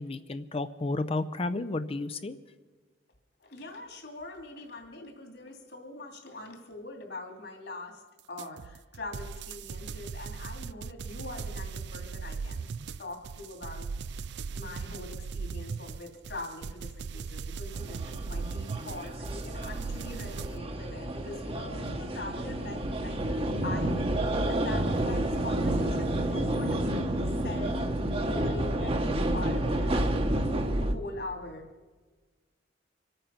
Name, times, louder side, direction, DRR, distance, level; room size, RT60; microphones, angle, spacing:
voice 1, 0.0-2.3, left 2 dB, 30° left, 11 dB, 0.5 m, -32 dB
voice 2, 3.4-8.0 8.3-12.7 13.0-13.9 14.5-23.2 23.6-27.2 27.4-30.2 30.8-31.7, left 2 dB, 60° left, 2 dB, 2.9 m, -43 dB
sound 1, 8.4-20.6, right 5 dB, 60° right, 0.4 m, -38 dB
sound 2, 17.7-30.9, right 1 dB, 30° right, 1.0 m, -30 dB
25.5 x 8.9 x 5.8 m, 1.3 s
head